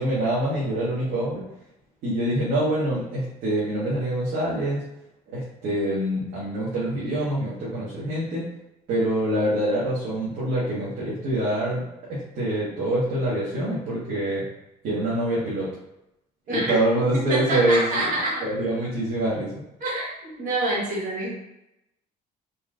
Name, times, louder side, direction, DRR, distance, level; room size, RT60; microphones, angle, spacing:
voice 1, 0.0-1.4 2.0-4.8 5.3-8.4 8.9-11.8 12.1-14.4 14.8-15.7 16.5-18.0 18.4-19.5, right 1 dB, 75° right, -9 dB, 1.4 m, -25 dB
voice 2, 16.5-18.4 19.8-21.4, right 1 dB, 50° right, -4 dB, 1.5 m, -27 dB
4.0 x 3.1 x 2.5 m, 0.89 s
cardioid pair, 110°, 17 cm